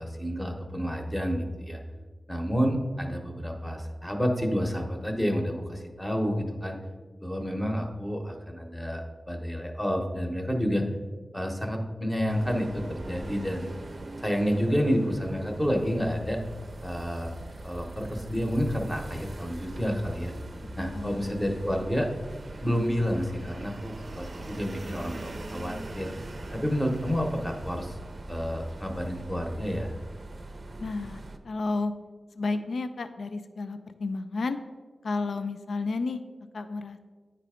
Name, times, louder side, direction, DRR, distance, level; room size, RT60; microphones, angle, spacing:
voice 1, 0.0-1.8 2.3-6.8 7.2-10.9 11.3-13.7 14.2-16.4 16.8-17.3 17.6-20.3 20.8-22.1 22.6-26.1 26.5-28.0 28.3-29.9, equal, 10° left, 2 dB, 0.9 m, -29 dB
sound 1, 12.3-31.4, right 2 dB, 45° right, 0.5 m, -41 dB
voice 2, 20.9-21.4 30.8-31.9 32.4-34.6 35.0-36.2 36.5-37.0, left 3 dB, 75° left, 10 dB, 0.4 m, -32 dB
9.7 x 3.3 x 4.9 m, 1.4 s
wide cardioid pair, 105°, 0 cm